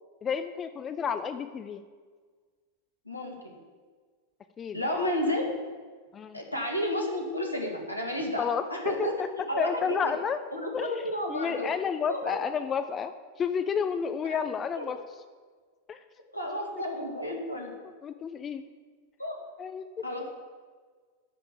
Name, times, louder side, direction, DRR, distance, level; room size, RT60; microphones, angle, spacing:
voice 1, 0.2-1.8 4.6-5.1 6.1-6.4 8.4-8.6 9.0-9.3 9.6-10.4 10.7-15.0 15.9-16.0 18.0-18.7 19.6-19.9, left 7 dB, 25° left, 10 dB, 0.5 m, -31 dB
voice 2, 3.1-3.6 4.7-5.5 6.3-9.2 9.5-10.1 10.5-11.7 12.1-12.4 14.3-14.9 16.3-17.7 19.2-19.4 20.0-20.3, left 1 dB, 85° left, 1 dB, 2.1 m, -32 dB
10.5 x 6.0 x 8.5 m, 1.5 s
figure-of-eight pair, 90°, 0 cm